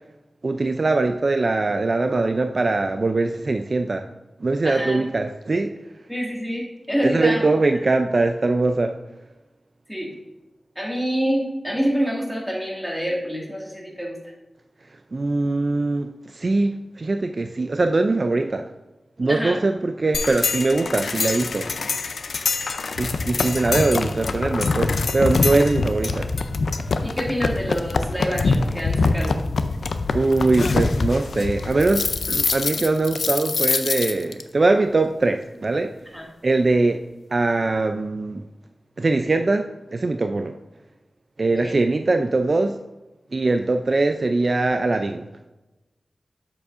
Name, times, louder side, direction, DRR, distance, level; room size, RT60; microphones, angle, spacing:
voice 1, 0.4-4.1 4.4-5.7 7.0-9.0 15.1-18.7 19.2-21.7 23.0-26.3 30.1-35.9 36.4-38.4 39.0-40.6 41.4-42.8 43.3-45.3, right 3 dB, 45° right, 6 dB, 0.3 m, -22 dB
voice 2, 4.6-5.0 6.1-7.5 9.9-10.1 10.8-14.3 19.2-19.6 22.7-22.8 27.0-29.4 36.1-36.3 41.5-41.8, equal, ahead, -3 dB, 2.0 m, -27 dB
sound 1, 20.1-34.4, left 3 dB, 85° left, 0.4 m, -24 dB
7.8 x 6.9 x 2.5 m, 1.1 s
wide cardioid pair, 95°, 0 cm